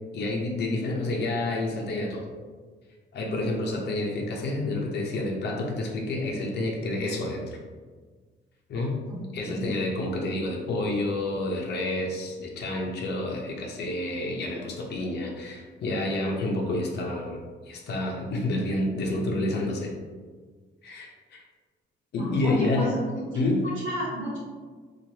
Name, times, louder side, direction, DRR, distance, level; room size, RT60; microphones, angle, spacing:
voice 1, 0.1-2.2 3.1-7.6 8.7-9.0 9.3-17.4 17.7-19.9 20.8-21.4 22.1-22.9 23.3-23.6, left 2 dB, 55° left, -1 dB, 0.7 m, -29 dB
voice 2, 9.1-9.6 10.2-10.3 22.2-23.0 23.3-23.4 23.6-24.4, equal, 75° right, -8 dB, 1.0 m, -31 dB
3.0 x 2.5 x 2.7 m, 1.5 s
cardioid pair, 90°, 20 cm